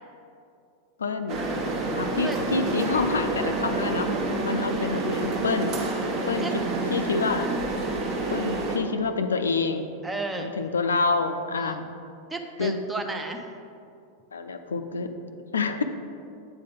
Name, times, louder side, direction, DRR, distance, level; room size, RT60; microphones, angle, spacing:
voice 1, 1.0-1.5 2.0-4.1 4.4-5.8 6.3-6.5 6.9-7.5 8.3-9.9 10.4-11.9 12.6-12.8 14.3-15.1 15.5-15.8, left 4 dB, 70° left, 8 dB, 0.4 m, -27 dB
sound 1, 1.3-8.8, right 2 dB, 40° right, 1.0 m, -28 dB
voice 2, 10.0-10.5 11.6-11.8 12.3-13.4, right 3 dB, 10° right, 4 dB, 0.6 m, -33 dB
8.7 x 3.9 x 5.3 m, 2.6 s
figure-of-eight pair, 90°, 0 cm